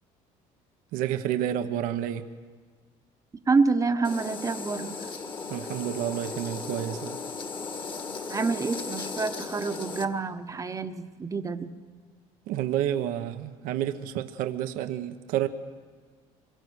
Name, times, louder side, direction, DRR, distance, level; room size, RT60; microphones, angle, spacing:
voice 1, 0.9-2.3 5.5-7.2 12.5-15.5, right 11 dB, 80° right, 1.2 m, -30 dB
voice 2, 3.5-5.1 8.3-11.7, right 4 dB, 25° right, 1.1 m, -27 dB
sound 1, 4.0-10.1, left 4 dB, 35° left, 1.8 m, -36 dB
26.0 x 23.0 x 6.4 m
cardioid pair, 115°, 14 cm